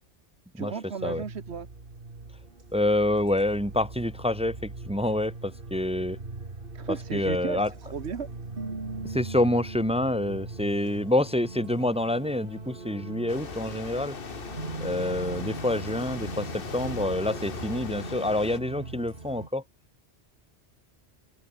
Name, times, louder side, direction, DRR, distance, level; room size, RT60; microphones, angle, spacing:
voice 1, 0.6-1.7 6.7-8.3, right 6 dB, 75° right, 1.5 m, -35 dB
sound 1, 1.0-19.5, right 3 dB, 55° right, 2.8 m, -40 dB
voice 2, 2.7-6.2 6.9-7.7 9.0-14.2 14.8-19.6, left 1 dB, 5° right, 0.8 m, -27 dB
sound 2, 13.3-18.6, left 5 dB, 55° left, 1.4 m, -39 dB
open air
omnidirectional pair, 1.1 m